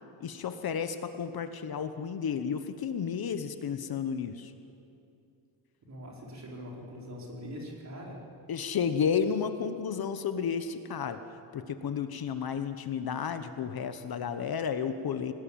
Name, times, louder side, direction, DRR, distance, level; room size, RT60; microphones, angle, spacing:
voice 1, 0.2-4.5 8.5-11.2 11.5-15.3, left 7 dB, 50° left, 9 dB, 1.1 m, -32 dB
voice 2, 5.9-8.2, equal, 35° right, -2 dB, 4.7 m, -42 dB
26.0 x 18.5 x 8.7 m, 2.6 s
wide cardioid pair, 165°, 48 cm